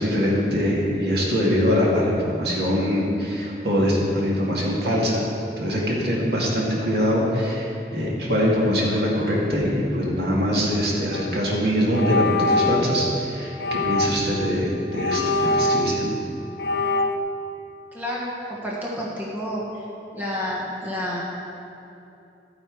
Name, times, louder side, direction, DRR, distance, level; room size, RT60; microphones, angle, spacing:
voice 1, 0.0-5.2 5.6-15.2 15.5-16.2, equal, 65° right, -4 dB, 2.3 m, -23 dB
sound 1, 11.1-11.3 11.9-13.0 13.6-14.3 14.9-16.2 16.6-17.2, left 2 dB, 65° left, 0.6 m, -23 dB
voice 2, 17.9-19.8 20.1-21.2, equal, 10° right, -5 dB, 1.5 m, -30 dB
12.5 x 9.1 x 4.8 m, 2.8 s
head